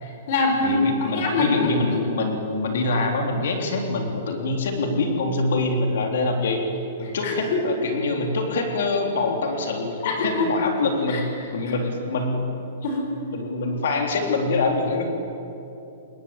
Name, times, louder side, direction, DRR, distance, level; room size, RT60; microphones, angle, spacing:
voice 1, 0.0-1.7 7.2-7.6 10.0-10.5 11.1-11.2 12.8-13.1, left 3 dB, 45° left, 2 dB, 4.8 m, -24 dB
voice 2, 0.6-6.6 7.0-12.5 13.3-15.1, left 3 dB, 70° left, 3 dB, 3.6 m, -25 dB
26.0 x 21.0 x 9.0 m, 2.8 s
hypercardioid pair, 170°, 0 cm